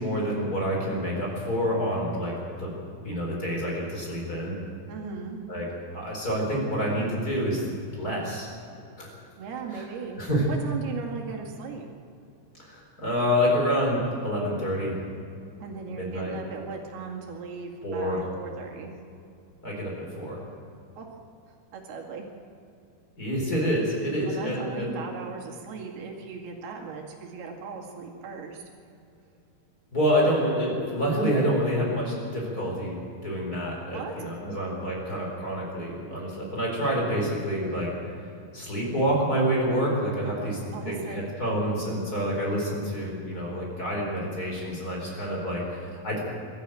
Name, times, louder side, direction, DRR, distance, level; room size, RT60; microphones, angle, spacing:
voice 1, 0.0-2.7 3.0-4.5 5.5-5.7 5.9-7.6 8.0-8.5 9.0-9.1 9.7-9.8 10.2-10.5 12.6-15.0 15.9-16.3 17.8-18.2 19.6-20.4 23.2-24.9 29.9-37.9 38.5-40.6 40.8-46.2, equal, 25° left, -2 dB, 4.8 m, -27 dB
voice 2, 4.9-5.4 9.4-10.2 10.5-11.9 15.6-18.9 21.0-21.1 21.7-22.2 24.3-28.7 33.9-34.6 40.7-41.2, right 5 dB, 85° right, 1 dB, 4.1 m, -38 dB
22.0 x 13.5 x 9.1 m, 2.6 s
omnidirectional pair, 4.4 m